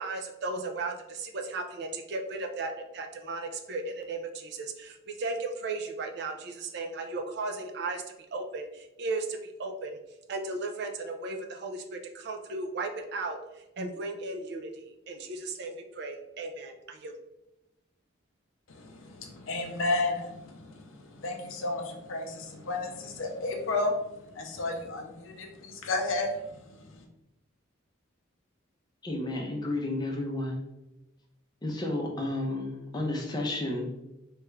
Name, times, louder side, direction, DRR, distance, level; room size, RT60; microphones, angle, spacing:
voice 1, 0.0-8.0 8.3-10.0 10.3-17.1, right 3 dB, 55° right, 5 dB, 0.4 m, -36 dB
voice 2, 18.7-27.0, left 2 dB, 75° left, 2 dB, 0.5 m, -33 dB
voice 3, 29.0-30.6 31.6-33.9, left 2 dB, 20° left, 0 dB, 0.5 m, -32 dB
3.2 x 2.3 x 3.1 m, 0.93 s
head